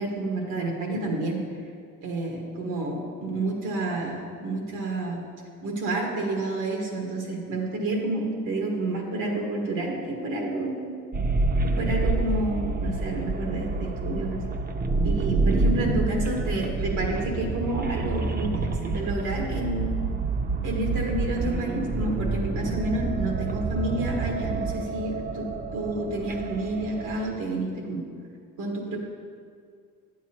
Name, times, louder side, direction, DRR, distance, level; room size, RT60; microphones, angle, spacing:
voice 1, 0.0-1.4 2.0-2.9 3.2-5.2 5.6-10.9 11.6-14.4 15.0-19.9 20.6-25.5 25.7-28.0 28.6-29.0, right 2 dB, 85° right, 0 dB, 1.5 m, -29 dB
sound 1, 11.1-27.3, right 3 dB, 30° right, 0.5 m, -28 dB
9.5 x 7.4 x 2.8 m, 2.2 s
cardioid pair, 90°, 30 cm